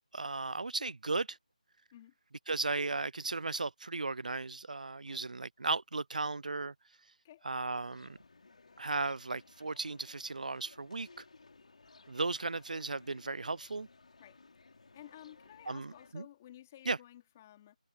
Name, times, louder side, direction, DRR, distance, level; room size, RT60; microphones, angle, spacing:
voice 1, 0.1-1.4 2.5-6.7 7.4-8.2 8.8-11.2 12.1-13.9 15.7-16.3 16.9-17.0, right 3 dB, 75° right, 0.5 m, -36 dB
sound 1, 7.7-16.1, left 3 dB, 60° left, 3.8 m, -60 dB
voice 2, 14.9-17.8, left 12 dB, 20° left, 3.5 m, -54 dB
figure-of-eight pair, 165°, 4 cm